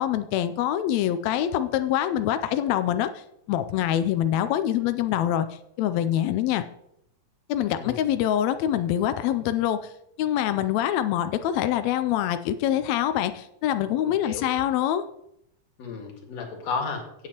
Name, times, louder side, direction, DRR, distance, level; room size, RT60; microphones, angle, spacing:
voice 1, 0.0-3.2 3.5-6.6 7.5-9.9 10.2-15.0, left 11 dB, 80° left, 10 dB, 1.6 m, -25 dB
voice 2, 14.0-14.5 15.8-17.3, left 4 dB, 60° left, 2 dB, 2.8 m, -33 dB
16.5 x 7.7 x 2.9 m, 0.78 s
omnidirectional pair, 3.5 m